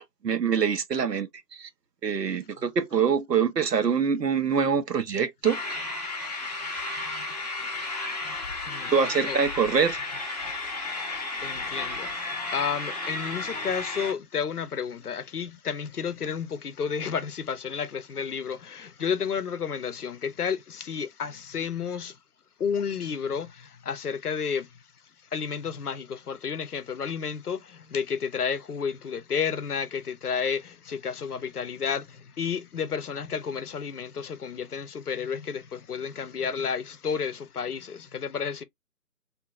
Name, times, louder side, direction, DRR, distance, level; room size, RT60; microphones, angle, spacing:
voice 1, 0.2-1.7 2.0-5.6 8.9-10.0, right 6 dB, 80° right, 0.9 m, -25 dB
sound 1, 5.4-14.1, left 3 dB, 25° left, 0.7 m, -33 dB
voice 2, 11.2-22.2 22.6-24.7 25.3-38.6, left 6 dB, 70° left, 0.7 m, -31 dB
2.8 x 2.7 x 2.3 m
figure-of-eight pair, 150°, 48 cm